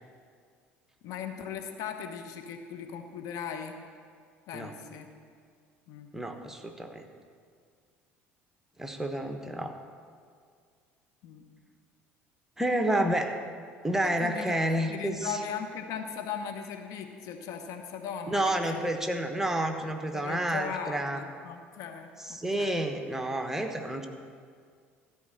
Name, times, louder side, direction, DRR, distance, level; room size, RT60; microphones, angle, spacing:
voice 1, 1.0-3.8 4.5-5.1 5.9-6.1 11.2-11.4 14.2-19.1 20.1-22.8, left 7 dB, 55° left, 5 dB, 1.0 m, -38 dB
voice 2, 6.1-7.1 8.8-9.7 12.6-13.4 13.8-15.4 18.3-21.2 22.2-24.1, right 1 dB, 5° right, 5 dB, 1.1 m, -29 dB
13.0 x 5.3 x 7.6 m, 2.1 s
figure-of-eight pair, 60°, 7 cm